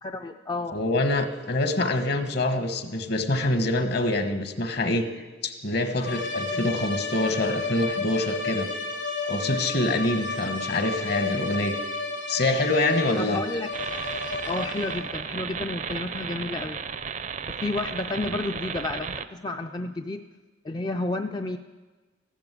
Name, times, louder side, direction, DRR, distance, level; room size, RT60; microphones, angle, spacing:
voice 1, 0.0-0.8 13.2-13.7 14.5-16.8 17.5-20.2 20.6-21.6, left 2 dB, 20° left, 6 dB, 0.4 m, -31 dB
voice 2, 0.7-5.1 5.4-8.7 9.3-11.7 12.3-13.4 18.2-18.3, left 2 dB, 55° left, 8 dB, 1.4 m, -25 dB
sound 1, 6.0-15.2, left 3 dB, 85° left, 3.2 m, -32 dB
sound 2, 13.7-19.3, right 6 dB, 40° right, 0.5 m, -34 dB
14.5 x 12.0 x 8.3 m, 1.3 s
head